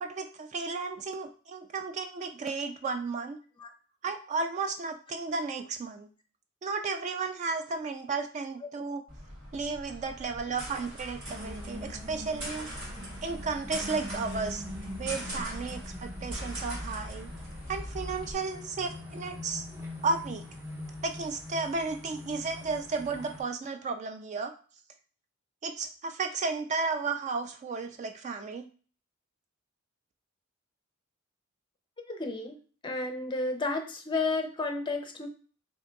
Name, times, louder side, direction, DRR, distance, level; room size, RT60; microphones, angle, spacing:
voice 1, 0.0-3.4 4.0-6.1 6.6-9.0 9.5-12.7 13.2-14.6 15.0-17.3 17.7-19.6 20.0-20.4 21.0-24.5 25.6-28.7, right 4 dB, 35° right, 6 dB, 0.3 m, -33 dB
sound 1, 9.1-18.3, equal, 55° right, 2.1 m, -41 dB
sound 2, 11.2-23.4, left 1 dB, 10° right, 0.8 m, -43 dB
voice 2, 32.1-32.6 32.8-35.3, left 3 dB, 25° left, 5 dB, 0.5 m, -32 dB
3.5 x 2.6 x 3.8 m, 0.40 s
head